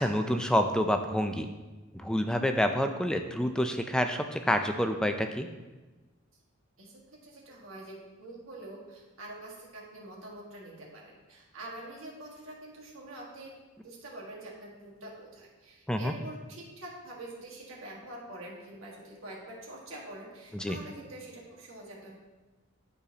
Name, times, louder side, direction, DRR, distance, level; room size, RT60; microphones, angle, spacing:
voice 1, 0.0-1.5 1.9-5.5 15.9-16.1 20.5-20.8, equal, 5° left, 6 dB, 0.3 m, -28 dB
voice 2, 6.8-13.6 13.8-22.1, right 1 dB, 75° right, -3 dB, 1.7 m, -45 dB
11.5 x 4.1 x 2.8 m, 1.2 s
head